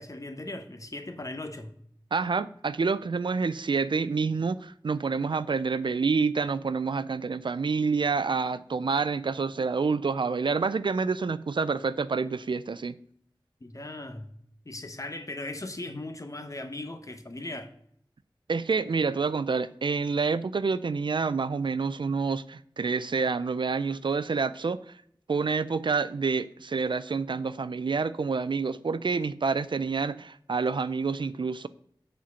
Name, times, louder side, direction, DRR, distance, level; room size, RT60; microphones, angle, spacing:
voice 1, 0.0-1.7 13.6-14.3 14.6-17.7, left 2 dB, 40° left, 1.1 m, -38 dB
voice 2, 2.1-13.0 18.5-24.8 25.3-31.7, right 4 dB, 75° right, 0.4 m, -28 dB
7.4 x 4.4 x 6.8 m
wide cardioid pair, 60°, 8 cm